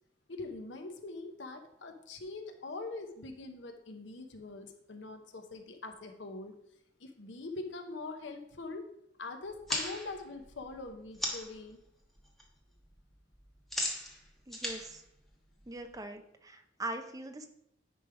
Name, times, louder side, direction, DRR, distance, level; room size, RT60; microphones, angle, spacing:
voice 1, 0.3-6.6 7.0-8.9 9.2-11.8, left 3 dB, 70° left, 6 dB, 0.9 m, -43 dB
sound 1, 9.5-11.6 12.0-12.4 12.7-16.0, left 1 dB, ahead, 1.2 m, -38 dB
voice 2, 14.5-15.0 15.7-17.5, right 2 dB, 20° right, 6 dB, 0.6 m, -41 dB
10.0 x 3.4 x 4.8 m, 0.76 s
head